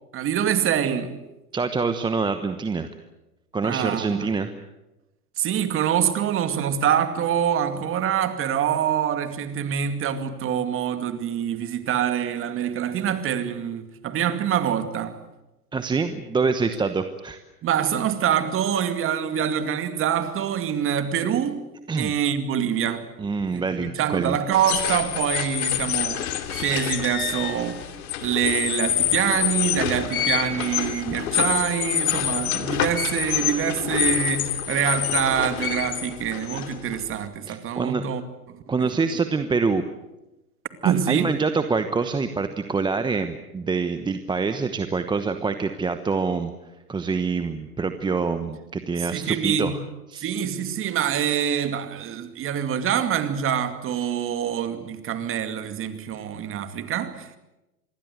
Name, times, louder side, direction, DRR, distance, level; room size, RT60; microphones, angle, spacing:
voice 1, 0.1-1.2 3.6-4.3 5.4-15.2 17.6-21.6 22.0-23.1 23.5-27.8 28.2-38.2 38.8-38.9 40.8-41.3 49.0-49.8 50.2-57.3, right 9 dB, 25° right, 2.4 m, -25 dB
voice 2, 1.5-2.9 3.5-4.5 15.7-17.4 21.9-22.1 23.2-24.4 37.5-38.0 38.7-39.8 40.8-46.5 46.9-49.7 50.1-50.3, right 4 dB, 10° right, 1.0 m, -25 dB
sound 1, 24.5-37.2, left 11 dB, 65° left, 2.8 m, -27 dB
26.5 x 21.0 x 8.0 m
hypercardioid pair, 120°, 46 cm